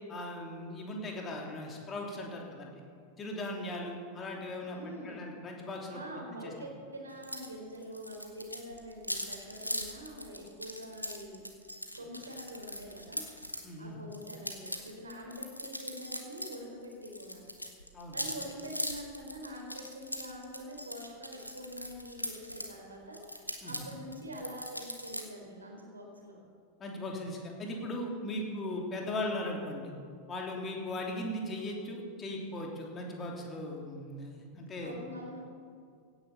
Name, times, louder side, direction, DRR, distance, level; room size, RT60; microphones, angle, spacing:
voice 1, 0.1-2.8 3.2-4.8 5.0-6.0 6.4-6.5 13.6-14.0 17.9-18.2 23.6-23.8 26.8-29.9 30.3-35.0, left 1 dB, 25° left, 0 dB, 3.2 m, -38 dB
voice 2, 4.7-5.2 5.9-11.4 11.9-13.2 13.8-17.4 18.1-26.4 28.1-28.5 34.8-35.4, equal, 75° right, 1 dB, 4.0 m, -45 dB
sound 1, 7.2-7.5 7.7-13.6 14.1-16.6 16.8-22.7 23.1-25.2, equal, 90° left, 1.6 m, -40 dB
17.0 x 9.9 x 7.1 m, 2.3 s
figure-of-eight pair, 90°, 0 cm